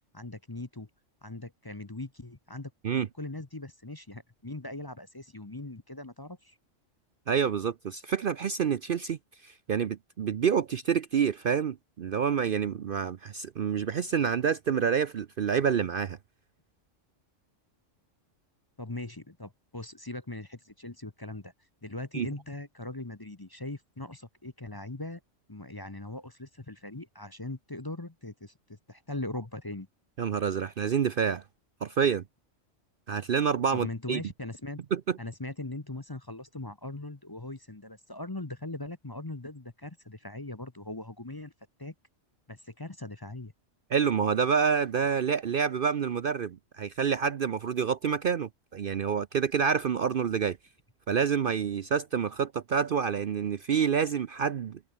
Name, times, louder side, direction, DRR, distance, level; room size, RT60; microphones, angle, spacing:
voice 1, 0.1-0.9 1.2-2.7 3.2-6.6 18.8-21.5 21.8-25.2 25.5-29.9 33.7-34.8 35.2-41.5 41.8-41.9 42.5-43.5, left 2 dB, 20° left, 1.0 m, -40 dB
voice 2, 7.3-9.2 9.4-16.2 22.1-22.3 30.2-31.4 31.8-32.2 33.1-34.2 34.9-35.2 43.9-50.6 51.1-54.8, right 7 dB, 55° right, 0.7 m, -28 dB
omnidirectional pair, 1.3 m